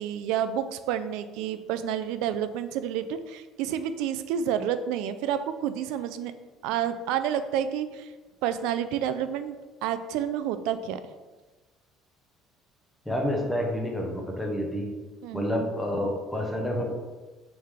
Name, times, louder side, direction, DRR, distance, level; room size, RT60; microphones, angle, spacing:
voice 1, 0.0-6.3 6.6-8.1 8.4-11.0 15.2-15.5, right 9 dB, 85° right, 11 dB, 0.3 m, -29 dB
voice 2, 13.1-14.9 15.3-16.9, equal, 5° left, 0 dB, 0.7 m, -29 dB
4.5 x 3.2 x 3.6 m, 1.2 s
cardioid pair, 165°, 0 cm